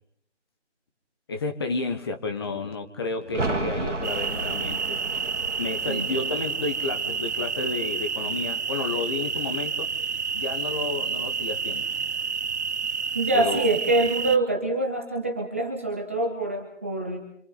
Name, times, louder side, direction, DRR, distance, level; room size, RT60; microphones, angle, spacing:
voice 1, 1.3-5.0 5.6-9.9 10.3-11.9 13.3-13.7, left 3 dB, 20° left, 6 dB, 1.3 m, -31 dB
sound 1, 3.2-8.8 9.1-9.2, right 3 dB, 85° right, 2.2 m, -34 dB
sound 2, 4.0-14.4, right 6 dB, 65° right, 0.8 m, -29 dB
voice 2, 13.1-17.2, right 2 dB, 10° right, 1 dB, 0.8 m, -25 dB
27.0 x 26.5 x 4.2 m, 0.69 s
figure-of-eight pair, 160°, 36 cm